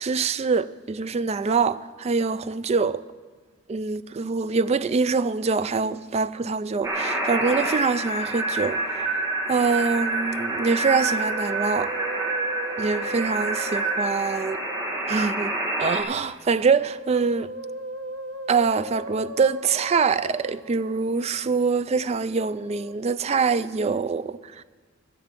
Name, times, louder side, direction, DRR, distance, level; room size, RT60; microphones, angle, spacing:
voice 1, 0.0-3.0 3.7-9.1 9.5-11.9 12.8-14.6 15.1-15.5 15.8-17.5 18.5-24.6, right 5 dB, 30° right, 0.3 m, -24 dB
sound 1, 6.8-16.0, right 2 dB, 15° right, 1.6 m, -28 dB
Musical instrument, 10.6-15.3 16.5-21.4 22.5-22.9, right 1 dB, 85° right, 0.9 m, -38 dB
13.5 x 7.9 x 7.4 m
head